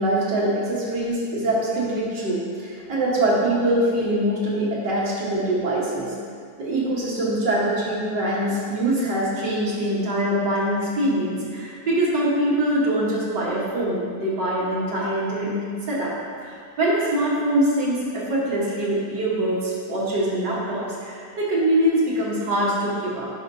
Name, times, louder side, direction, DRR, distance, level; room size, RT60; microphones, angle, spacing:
voice 1, 0.0-6.1 6.6-16.1 16.4-23.3, right 1 dB, 80° right, -7 dB, 1.9 m, -23 dB
9.9 x 5.0 x 2.6 m, 2.2 s
omnidirectional pair, 1.9 m